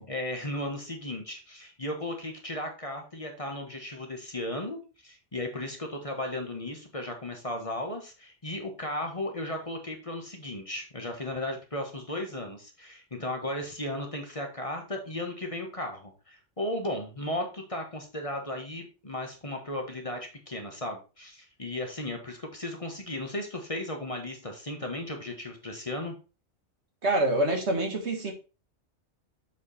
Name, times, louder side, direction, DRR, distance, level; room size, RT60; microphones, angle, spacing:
voice 1, 0.1-4.8 5.0-26.1, left 1 dB, 30° left, 3 dB, 1.4 m, -35 dB
voice 2, 27.0-28.3, right 1 dB, 65° right, 3 dB, 1.9 m, -26 dB
7.5 x 4.8 x 4.1 m, 0.33 s
omnidirectional pair, 1.2 m